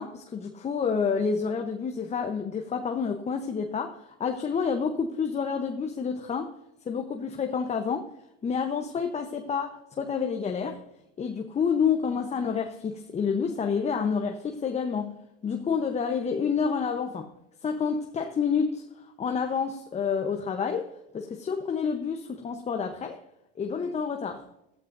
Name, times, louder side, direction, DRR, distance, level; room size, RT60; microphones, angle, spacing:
voice 1, 0.0-6.5 6.9-8.1 8.4-10.8 11.2-17.3 17.6-18.8 19.2-23.2 23.6-24.4, left 6 dB, 20° left, 5 dB, 0.9 m, -29 dB
14.5 x 13.5 x 2.6 m, 0.85 s
supercardioid pair, 105°, 30 cm